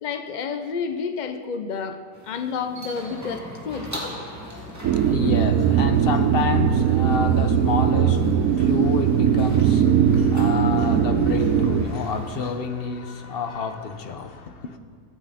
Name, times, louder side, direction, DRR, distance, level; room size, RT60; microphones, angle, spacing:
voice 1, 0.0-2.0 2.2-3.9, left 6 dB, 75° left, 7 dB, 0.4 m, -30 dB
sound 1, 2.1-12.4, right 1 dB, 10° right, 2.0 m, -40 dB
voice 2, 3.9-14.8, left 5 dB, 50° left, 8 dB, 0.8 m, -29 dB
sound 2, 4.8-11.8, right 8 dB, 70° right, 1.0 m, -19 dB
23.5 x 9.2 x 4.2 m, 2.2 s
omnidirectional pair, 1.8 m